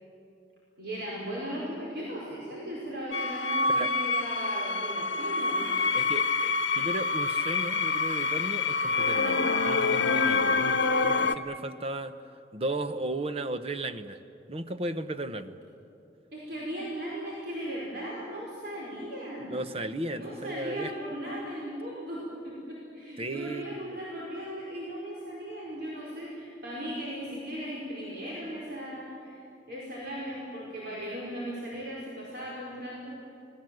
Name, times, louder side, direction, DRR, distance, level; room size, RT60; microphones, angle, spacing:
voice 1, 0.8-5.9 16.3-19.5 20.2-29.4 29.7-33.2, equal, 60° right, -5 dB, 5.0 m, -37 dB
sound 1, 3.1-11.3, left 4 dB, 80° left, 0.9 m, -26 dB
voice 2, 5.9-12.2 12.5-14.2 14.5-15.6 19.5-20.9 23.2-24.0, right 2 dB, 35° right, 10 dB, 0.9 m, -35 dB
28.0 x 19.5 x 7.8 m, 2.7 s
head